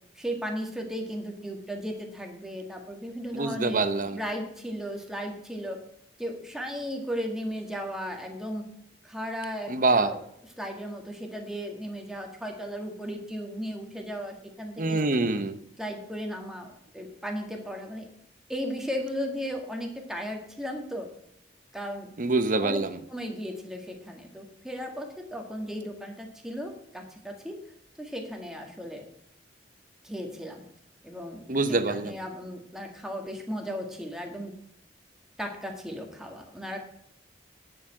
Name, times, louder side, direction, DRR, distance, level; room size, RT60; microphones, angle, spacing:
voice 1, 0.1-3.8 4.1-5.8 6.2-8.7 9.0-10.2 10.6-15.2 15.8-18.1 18.5-21.1 21.7-22.1 22.6-22.8 23.1-27.6 28.0-29.0 30.0-30.6 31.0-34.5 35.4-36.8, equal, 5° right, 1 dB, 1.8 m, -36 dB
voice 2, 3.3-4.2 9.7-10.1 14.8-15.6 22.2-23.0 31.5-32.2, right 3 dB, 45° right, 11 dB, 0.9 m, -25 dB
11.0 x 6.9 x 6.3 m, 0.72 s
head